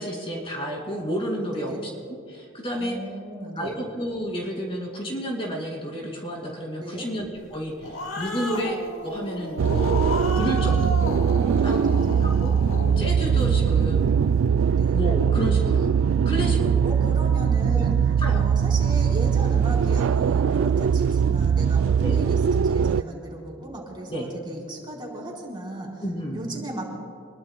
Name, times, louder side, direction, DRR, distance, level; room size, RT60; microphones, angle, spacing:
voice 1, 0.0-1.7 2.1-3.0 3.5-8.8 9.0-10.0 10.4-11.1 11.6-11.8 12.2-12.6 13.0-14.2 14.9-15.9 16.2-16.9 17.7-17.8 18.2-18.4 22.0-22.2 24.1-24.4 26.0-26.5, equal, 25° left, -1 dB, 2.5 m, -31 dB
voice 2, 1.5-1.8 2.8-3.8 6.8-7.1 11.6-12.3 14.7-15.0 16.8-18.0 18.3-26.0 26.3-27.0, right 1 dB, 25° right, -2 dB, 3.9 m, -36 dB
Growling, 7.5-14.3, left 2 dB, 70° left, 1.2 m, -33 dB
sound 1, 9.6-23.0, right 7 dB, 70° right, 0.3 m, -21 dB
26.5 x 21.5 x 2.2 m, 2.4 s
head